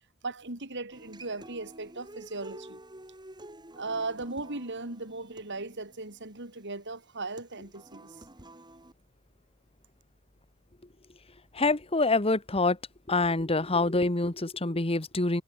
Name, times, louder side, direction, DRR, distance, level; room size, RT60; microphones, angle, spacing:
voice 1, 0.2-2.8 3.8-8.3, right 3 dB, 55° right, 4.1 m, -37 dB
Human voice / Acoustic guitar, 0.9-8.9, right 1 dB, 20° right, 6.9 m, -50 dB
voice 2, 11.5-12.8 13.1-15.4, left 2 dB, 25° left, 1.5 m, -26 dB
head